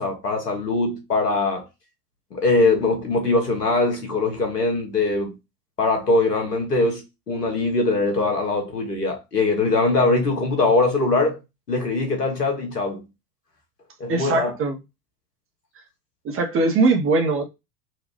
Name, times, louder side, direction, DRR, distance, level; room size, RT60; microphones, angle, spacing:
voice 1, 0.0-1.7 2.3-5.3 5.8-11.4 11.7-13.1 14.0-14.5, left 3 dB, 85° left, 1.4 m, -22 dB
voice 2, 14.1-14.8 16.2-17.4, right 3 dB, 30° right, 0.9 m, -21 dB
4.0 x 2.5 x 3.3 m
figure-of-eight pair, 80°, 47 cm